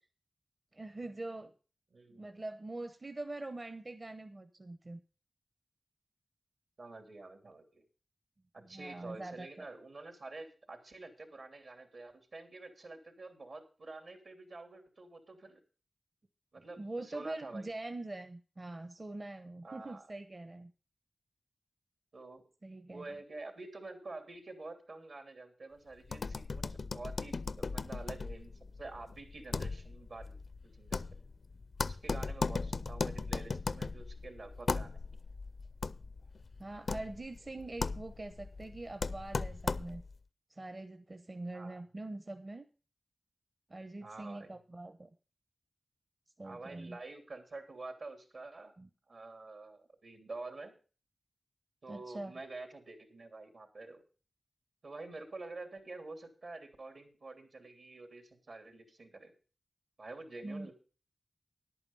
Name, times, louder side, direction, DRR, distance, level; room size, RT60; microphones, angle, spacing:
voice 1, 0.7-1.5 2.1-5.0 8.6-9.7 16.6-20.7 22.6-23.0 36.6-40.0 40.5-42.7 43.7-45.1 46.4-47.0 48.8-48.9 51.9-52.3 60.4-60.7, right 2 dB, 40° right, 8 dB, 0.9 m, -43 dB
voice 2, 1.9-2.4 6.8-7.8 8.5-15.6 16.5-17.7 19.6-20.1 22.1-22.4 22.9-30.4 30.6-31.2 31.8-35.0 41.5-41.8 44.0-44.5 46.4-48.7 49.1-50.7 51.8-54.0 54.8-59.3 60.0-60.7, right 3 dB, 70° right, 5 dB, 2.9 m, -48 dB
sound 1, 26.0-40.2, left 4 dB, 65° left, 0.5 m, -38 dB
11.0 x 8.9 x 5.4 m, 0.37 s
wide cardioid pair, 65°, 0 cm